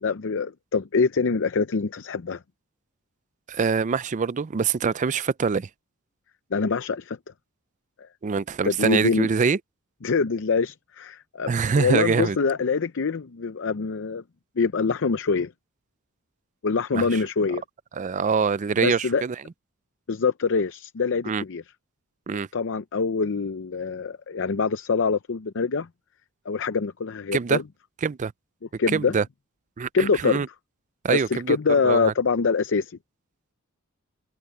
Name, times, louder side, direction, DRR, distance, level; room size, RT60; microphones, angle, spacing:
voice 1, 0.0-2.4 6.5-7.2 8.0-8.1 8.6-9.3 10.0-14.2 14.6-15.5 16.6-17.6 18.8-19.2 20.1-21.6 22.3-25.9 26.5-27.6 28.8-29.1 29.9-30.4 31.1-33.0, left 5 dB, 60° left, 0.6 m, -25 dB
voice 2, 3.5-5.7 8.2-9.6 11.5-12.4 16.9-17.1 18.0-19.4 21.2-21.4 22.3-22.5 27.3-27.6 28.0-28.3 28.9-29.2 29.8-30.5 31.0-31.6 31.8-32.1, right 5 dB, 35° right, 0.4 m, -24 dB
head